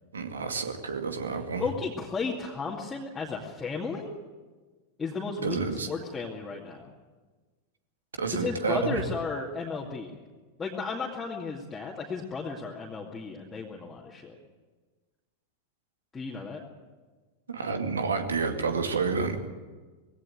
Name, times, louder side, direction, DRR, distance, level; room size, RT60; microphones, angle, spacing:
voice 1, 0.1-1.7 5.4-5.9 8.2-9.0 17.5-19.5, right 4 dB, 70° right, 6 dB, 2.2 m, -29 dB
voice 2, 1.6-4.2 5.0-6.9 8.3-10.2 10.6-14.4 16.1-16.6, left 4 dB, 15° left, -3 dB, 2.4 m, -34 dB
20.0 x 17.0 x 9.3 m, 1.3 s
figure-of-eight pair, 90°, 0 cm